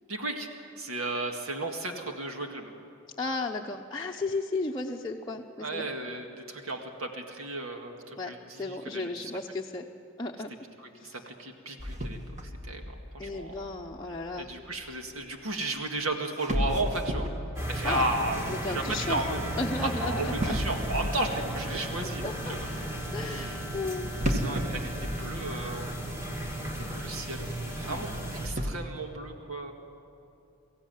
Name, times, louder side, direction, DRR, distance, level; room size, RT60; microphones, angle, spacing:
voice 1, 0.1-0.5 0.8-2.7 5.6-9.3 10.8-12.2 12.6-13.6 14.4-17.3 17.7-19.5 19.8-22.6 23.2-23.6 24.3-25.9 26.8-27.5 27.7-29.7, right 2 dB, 85° right, 3 dB, 1.9 m, -34 dB
voice 2, 3.2-5.9 8.2-8.3 8.6-9.8 10.2-10.5 11.0-11.2 13.2-14.5 17.8-18.1 18.5-20.6 22.2-22.5 23.1-24.1 27.9-28.0, left 3 dB, 20° left, -2 dB, 0.8 m, -34 dB
sound 1, 11.8-14.9 15.9-16.0 16.4-19.7 20.4-22.3 24.2-26.0 26.2-26.3 27.0-27.1 28.1-28.7, equal, 35° right, 1.9 m, -34 dB
sound 2, 17.6-28.5, right 1 dB, 15° right, 2.4 m, -35 dB
23.5 x 15.5 x 9.2 m, 2.8 s
head